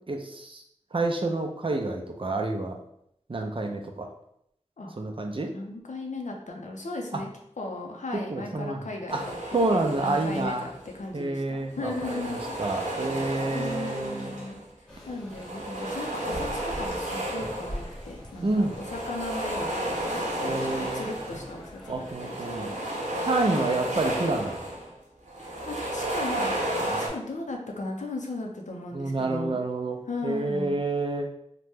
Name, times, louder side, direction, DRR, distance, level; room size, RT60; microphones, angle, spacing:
voice 1, 0.1-0.6 0.9-2.8 3.3-4.1 5.0-5.5 7.1-7.2 8.3-8.8 9.1-9.2 9.5-10.7 11.1-14.4 18.4-18.8 20.4-21.0 21.9-22.7 23.3-24.7 26.8-27.0 28.9-31.3, right 2 dB, 45° right, 3 dB, 0.5 m, -29 dB
voice 2, 5.5-7.3 7.6-9.4 9.7-10.7 10.9-12.6 13.5-14.6 15.1-18.6 18.9-22.9 23.5-24.3 25.4-29.6 30.1-30.7, left 2 dB, 85° left, 1 dB, 0.5 m, -36 dB
sound 1, 9.1-10.9 11.7-14.7 15.3-18.1 18.5-21.5 21.9-24.9 25.3-27.1, right 1 dB, 85° right, 0.7 m, -33 dB
sound 2, 14.9-22.1, equal, 5° left, 1.1 m, -43 dB
2.9 x 2.1 x 3.4 m, 0.72 s
wide cardioid pair, 60°, 12 cm